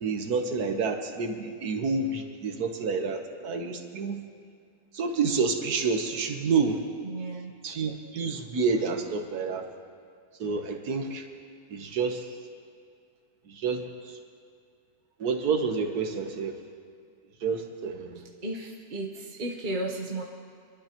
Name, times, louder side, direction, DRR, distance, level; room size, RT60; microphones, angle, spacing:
voice 1, 0.0-4.2 4.9-6.8 7.6-9.7 10.4-11.3 11.7-12.3 13.5-14.2 15.2-16.6 17.4-18.2, right 4 dB, 75° right, 5 dB, 1.6 m, -29 dB
voice 2, 7.0-7.5 18.4-20.2, right 2 dB, 35° right, -1 dB, 1.1 m, -34 dB
26.0 x 12.0 x 3.0 m, 2.3 s
omnidirectional pair, 1.6 m